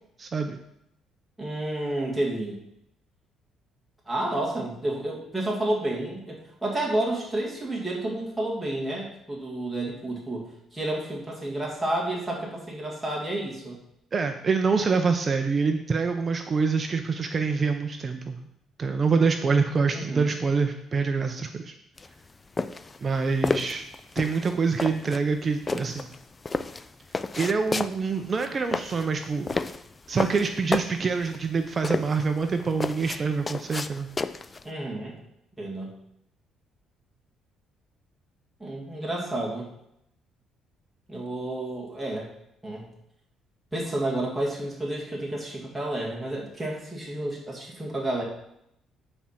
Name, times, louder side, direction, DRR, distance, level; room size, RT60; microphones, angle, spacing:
voice 1, 0.2-0.6 14.1-18.4 18.8-21.7 23.0-23.8 24.2-26.1 27.4-29.5 30.1-34.1, right 4 dB, 30° right, 6 dB, 0.6 m, -26 dB
voice 2, 1.4-2.6 4.1-13.8 19.9-20.3 34.6-35.2 35.6-35.9 38.6-39.7 41.1-42.3 42.6-42.9 43.7-48.2, right 1 dB, ahead, -5 dB, 2.0 m, -30 dB
sound 1, 22.0-34.7, left 3 dB, 20° left, 0.3 m, -31 dB
9.7 x 4.4 x 5.7 m, 0.79 s
cardioid pair, 130°, 0 cm